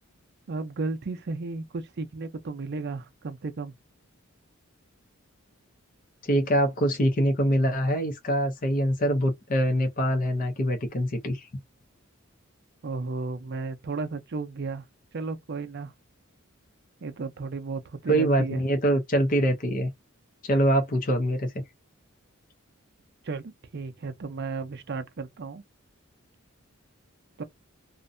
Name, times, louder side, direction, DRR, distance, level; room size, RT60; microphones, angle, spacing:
voice 1, 0.5-3.7 12.8-14.8 15.1-15.9 17.0-18.6 23.2-25.6 27.4-27.5, right 3 dB, 55° right, 0.5 m, -34 dB
voice 2, 6.2-11.5 18.1-19.9 20.4-21.5, equal, 40° left, 0.6 m, -24 dB
2.5 x 2.1 x 2.5 m
head